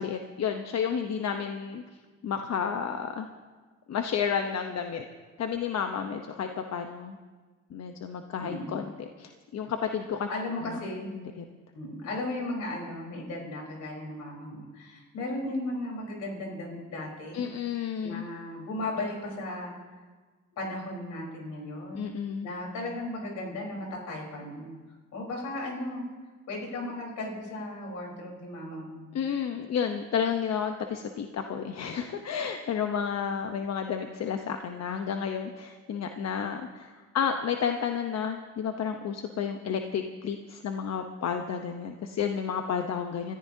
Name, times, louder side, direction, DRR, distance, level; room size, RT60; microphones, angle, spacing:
voice 1, 0.0-1.8 2.2-3.3 3.9-5.0 5.4-7.2 7.7-10.3 11.1-11.4 17.3-18.2 21.9-22.5 29.1-43.4, left 7 dB, 60° left, 5 dB, 0.9 m, -31 dB
voice 2, 8.4-8.8 10.3-11.1 11.7-17.5 18.0-19.8 20.6-22.0 22.4-24.7 25.1-26.0 26.5-29.1, left 1 dB, 80° left, -1 dB, 4.2 m, -36 dB
25.0 x 14.0 x 2.8 m, 1.4 s
cardioid pair, 90°, 30 cm